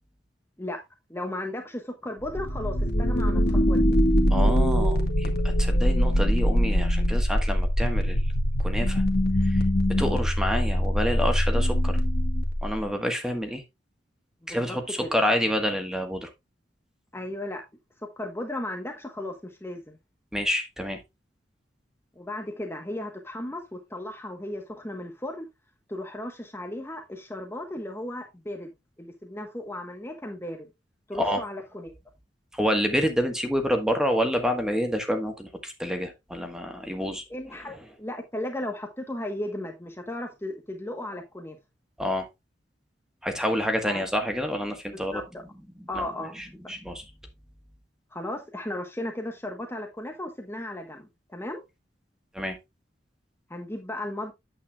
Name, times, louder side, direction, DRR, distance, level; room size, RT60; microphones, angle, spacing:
voice 1, 1.1-3.8 14.5-15.2 17.1-17.6 18.2-20.0 22.2-25.5 25.9-28.7 29.0-30.7 31.1-31.9 37.3-41.6 43.8-44.0 45.1-45.2 45.9-46.3 48.1-51.6 53.5-54.3, left 1 dB, 15° left, 1.2 m, -35 dB
sound 1, 2.2-12.9, equal, 60° left, 1.7 m, -23 dB
voice 2, 4.3-8.2 8.6-9.0 9.4-9.6 9.9-12.0 12.6-13.6 14.5-16.3 20.3-21.0 31.1-31.4 32.5-37.2 37.5-37.6 42.0-42.3 43.2-45.2 45.9-46.0 46.3-47.0 52.3-52.6, equal, 5° right, 1.4 m, -28 dB
8.9 x 8.4 x 2.4 m
head